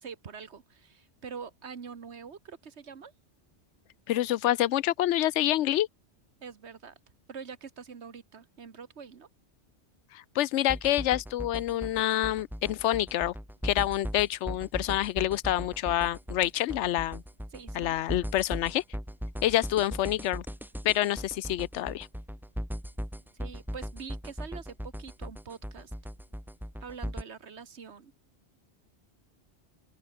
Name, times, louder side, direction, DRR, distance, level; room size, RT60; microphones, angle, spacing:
voice 1, 0.0-3.1 6.4-6.9 7.3-9.3 17.5-17.9 23.3-25.9 26.8-28.1, right 6 dB, 70° right, 1.7 m, -44 dB
voice 2, 4.1-5.9 10.1-13.3 13.6-17.2 17.7-18.8 19.4-20.5 20.8-22.1, left 13 dB, 85° left, 0.9 m, -27 dB
sound 1, 10.7-27.2, equal, ahead, 1.2 m, -38 dB
open air
omnidirectional pair, 1.2 m